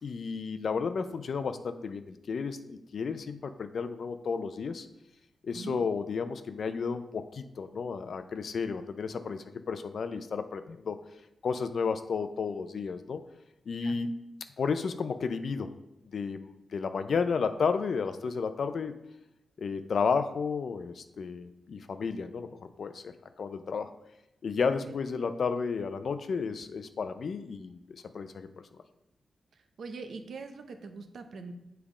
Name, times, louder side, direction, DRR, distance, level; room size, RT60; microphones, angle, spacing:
voice 1, 0.0-4.9 5.4-11.0 11.4-13.2 13.7-14.1 14.6-15.7 16.1-18.9 19.6-23.9 24.4-28.7, left 5 dB, 70° left, 9 dB, 0.5 m, -32 dB
voice 2, 29.8-31.5, right 4 dB, 75° right, 6 dB, 0.7 m, -42 dB
7.3 x 3.4 x 4.9 m, 0.88 s
cardioid pair, 60°, 0 cm